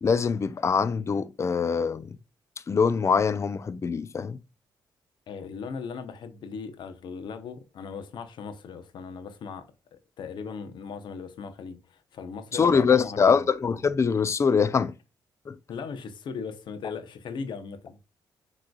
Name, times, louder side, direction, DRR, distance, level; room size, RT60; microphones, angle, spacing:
voice 1, 0.0-2.1 2.7-4.4 12.5-14.9 15.5-15.6, left 6 dB, 35° left, 0.4 m, -23 dB
voice 2, 5.3-9.7 9.9-13.5 15.7-18.0, left 5 dB, 70° left, 0.8 m, -38 dB
6.3 x 3.1 x 2.3 m
cardioid pair, 90°, 8 cm